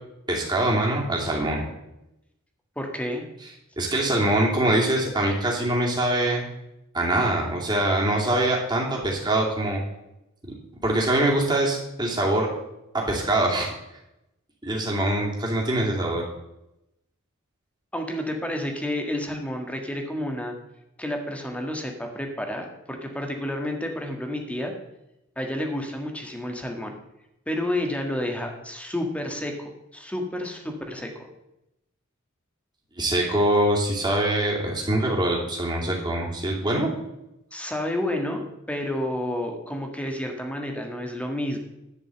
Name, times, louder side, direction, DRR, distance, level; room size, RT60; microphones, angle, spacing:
voice 1, 0.3-1.6 3.8-6.4 6.9-9.8 10.8-12.5 12.9-13.7 14.6-16.2 33.0-36.9, right 1 dB, 20° right, -2 dB, 2.5 m, -23 dB
voice 2, 2.8-3.3 17.9-20.5 21.0-24.7 25.4-26.9 27.5-31.3 37.5-41.6, left 1 dB, 5° left, 3 dB, 1.5 m, -30 dB
11.0 x 5.2 x 7.7 m, 0.88 s
head